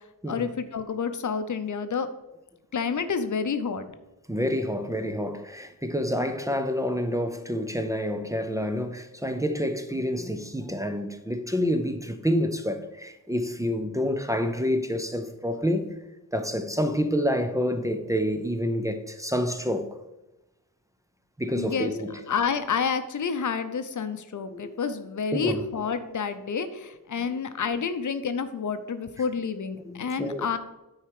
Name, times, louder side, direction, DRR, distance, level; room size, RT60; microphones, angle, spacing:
voice 1, 0.3-2.1 2.7-3.9 21.5-30.6, left 6 dB, 60° left, 0.7 m, -29 dB
voice 2, 4.3-15.9 16.3-19.9 21.4-22.2 24.5-24.7 25.3-25.6 27.2-27.4 29.8-30.5, equal, 10° right, 0.5 m, -28 dB
9.0 x 4.8 x 4.8 m
wide cardioid pair, 135°, 34 cm